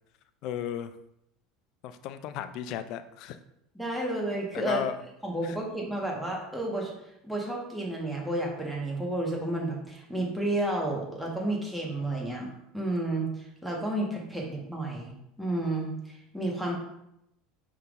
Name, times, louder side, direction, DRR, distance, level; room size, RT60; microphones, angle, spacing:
voice 1, 0.4-0.9 1.8-3.4 4.5-5.0 5.4-5.6, left 10 dB, 60° left, 11 dB, 0.4 m, -34 dB
voice 2, 3.7-4.8 5.2-6.9 7.2-16.7, right 1 dB, ahead, -3 dB, 1.3 m, -31 dB
5.4 x 3.6 x 2.5 m, 0.80 s
hypercardioid pair, 85°, 0 cm